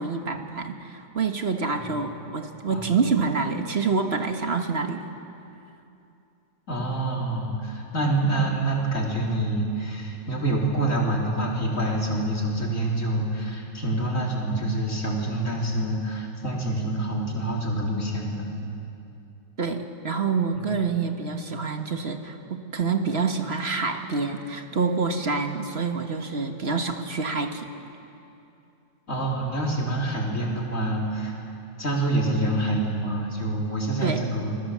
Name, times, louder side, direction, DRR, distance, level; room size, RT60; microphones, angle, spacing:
voice 1, 0.0-5.0 19.6-27.7 34.0-34.2, right 4 dB, 40° right, 5 dB, 1.4 m, -27 dB
voice 2, 6.7-18.5 20.5-20.6 29.1-31.4 31.8-34.6, right 1 dB, 45° left, -2 dB, 4.2 m, -26 dB
29.0 x 21.0 x 7.4 m, 2.7 s
omnidirectional pair, 1.9 m